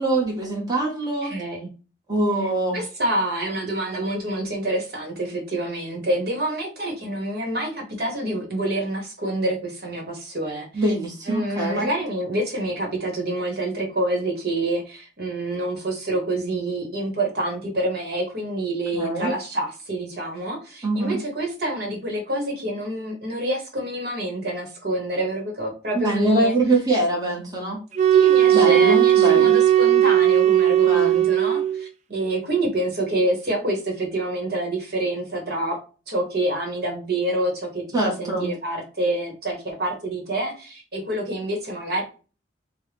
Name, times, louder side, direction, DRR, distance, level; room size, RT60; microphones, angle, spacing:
voice 1, 0.0-1.3 2.1-2.8 10.7-11.9 18.9-19.3 20.8-21.2 25.9-27.8 28.5-29.6 30.9-31.2 37.9-38.5, right 2 dB, 20° right, -3 dB, 1.1 m, -23 dB
voice 2, 1.2-1.7 2.7-10.8 11.3-26.5 28.1-35.8 36.1-42.0, right 1 dB, 55° right, 1 dB, 1.2 m, -27 dB
sound 1, 27.9-31.9, right 12 dB, 40° right, 0.4 m, -17 dB
4.3 x 2.2 x 3.4 m, 0.35 s
head